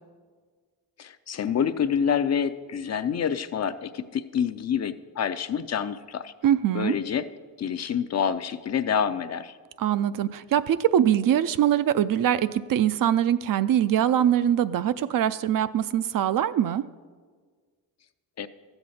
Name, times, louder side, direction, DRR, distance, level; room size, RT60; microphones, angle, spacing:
voice 1, 1.0-6.3 6.7-7.3 7.6-9.5 18.4-18.5, left 7 dB, 40° left, 12 dB, 0.5 m, -27 dB
voice 2, 6.4-7.0 9.8-16.8, right 10 dB, 55° right, 14 dB, 0.4 m, -23 dB
13.0 x 7.9 x 4.2 m, 1.5 s
cardioid pair, 90°, 42 cm